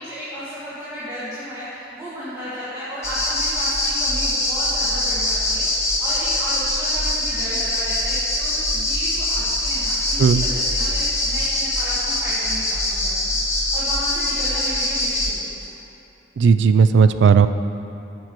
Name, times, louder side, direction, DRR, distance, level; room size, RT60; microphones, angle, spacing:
voice 1, 0.0-15.8, equal, 15° right, -12 dB, 1.5 m, -34 dB
sound 1, 3.0-15.3, left 1 dB, 15° left, 1.2 m, -23 dB
voice 2, 16.4-17.5, right 6 dB, 65° right, 11 dB, 0.3 m, -14 dB
7.4 x 4.6 x 6.0 m, 2.8 s
head